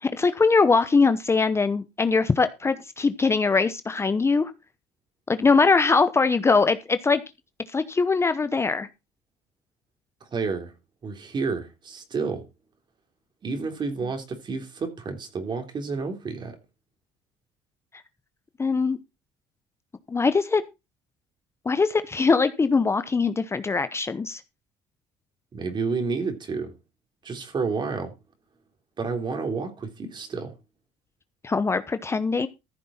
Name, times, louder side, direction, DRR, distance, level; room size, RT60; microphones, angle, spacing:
voice 1, 0.0-4.5 5.3-7.2 7.7-8.9 18.6-19.0 20.1-20.6 21.6-24.4 31.4-32.5, left 4 dB, 20° left, 0.8 m, -22 dB
voice 2, 10.3-10.7 11.0-12.4 13.4-16.6 25.5-26.7 27.2-28.1 29.0-30.5, right 4 dB, 35° right, 3.4 m, -30 dB
14.5 x 7.7 x 4.3 m
cardioid pair, 100°, 12 cm